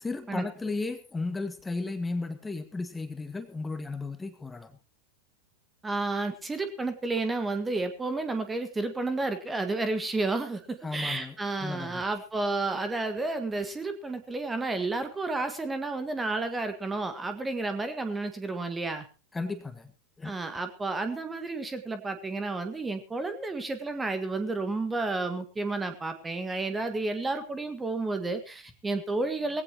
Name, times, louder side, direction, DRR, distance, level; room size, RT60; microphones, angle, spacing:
voice 1, 0.0-4.7 10.8-11.4 11.6-12.0 19.3-19.9 20.2-20.3, left 3 dB, 10° left, 9 dB, 1.7 m, -34 dB
voice 2, 5.8-19.0 20.2-29.6, right 3 dB, 10° right, 8 dB, 1.7 m, -31 dB
19.5 x 16.5 x 3.0 m, 0.31 s
figure-of-eight pair, 90°, 0 cm